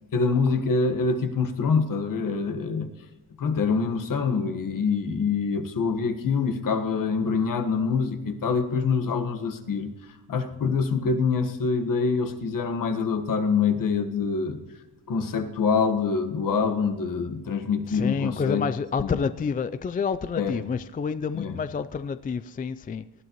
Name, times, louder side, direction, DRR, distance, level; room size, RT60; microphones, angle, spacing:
voice 1, 0.1-2.9 3.4-14.6 15.1-18.7 19.0-19.2 20.4-20.6 21.3-21.5, left 5 dB, 55° left, 7 dB, 1.5 m, -25 dB
voice 2, 17.9-23.1, left 5 dB, 25° left, 13 dB, 0.4 m, -28 dB
19.0 x 12.0 x 3.1 m, 1.2 s
cardioid pair, 100°, 38 cm